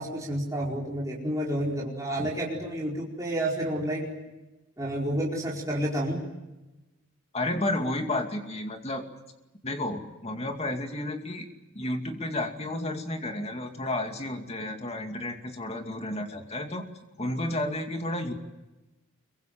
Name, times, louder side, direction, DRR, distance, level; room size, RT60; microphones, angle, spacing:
voice 1, 0.0-4.2 4.8-6.2, right 1 dB, 15° right, -5 dB, 4.7 m, -30 dB
voice 2, 7.3-9.1 9.6-11.4 11.7-16.8 17.2-18.3, left 1 dB, 30° left, 4 dB, 2.5 m, -31 dB
25.5 x 23.5 x 7.7 m, 1.1 s
head